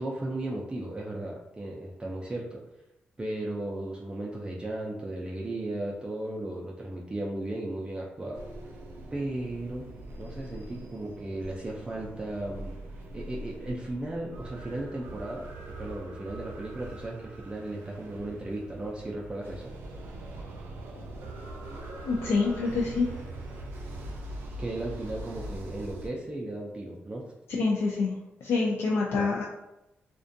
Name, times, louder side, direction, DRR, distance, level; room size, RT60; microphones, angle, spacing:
voice 1, 0.0-2.6 3.2-8.4 9.1-9.9 10.2-12.7 13.1-15.5 15.8-19.7 24.6-27.2 29.1-29.2, right 1 dB, 25° right, -3 dB, 0.4 m, -35 dB
sound 1, 8.3-26.1, right 1 dB, 85° right, 0.4 m, -42 dB
voice 2, 22.0-23.1 27.5-28.1 28.4-29.5, left 4 dB, 70° left, -2 dB, 0.3 m, -26 dB
2.4 x 2.2 x 2.5 m, 0.94 s
cardioid pair, 75°, 4 cm